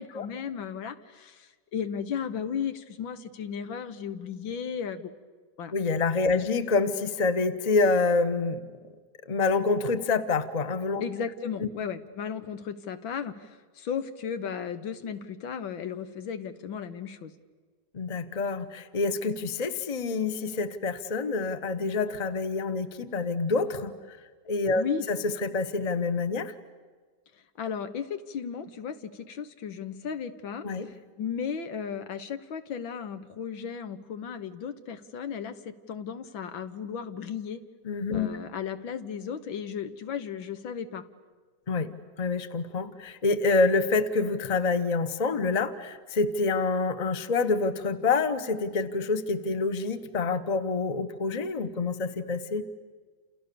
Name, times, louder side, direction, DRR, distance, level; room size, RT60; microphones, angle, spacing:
voice 1, 0.0-5.1 5.6-5.7 6.3-6.4 11.0-17.3 24.8-25.1 27.6-37.6 38.1-41.0, left 7 dB, 80° left, 10 dB, 2.0 m, -35 dB
voice 2, 5.7-8.6 9.3-11.0 17.9-24.2 24.5-26.5 30.6-30.9 37.9-38.3 41.7-41.9 42.2-52.6, left 3 dB, 25° left, 11 dB, 1.0 m, -27 dB
29.5 x 28.5 x 7.0 m, 1.5 s
omnidirectional pair, 2.1 m